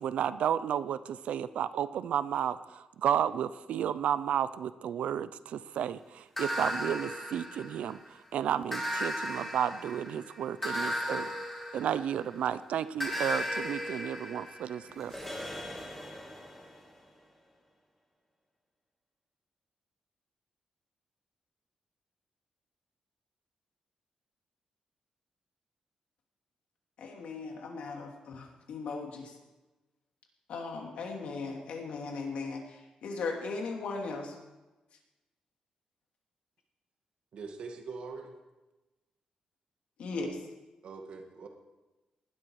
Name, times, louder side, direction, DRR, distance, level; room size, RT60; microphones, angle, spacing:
voice 1, 0.0-8.0 8.3-11.3 11.7-15.2, right 9 dB, 85° right, 15 dB, 0.6 m, -32 dB
sound 1, 6.4-8.1 8.7-12.4 13.0-16.7, equal, 10° left, 2.9 m, -36 dB
voice 2, 27.0-29.3 30.5-34.3 40.0-40.4, left 4 dB, 70° left, 2 dB, 2.8 m, -38 dB
voice 3, 37.3-38.3 40.8-41.5, right 4 dB, 55° right, 3 dB, 1.9 m, -43 dB
19.0 x 12.5 x 4.8 m, 1.1 s
wide cardioid pair, 175°, 2 cm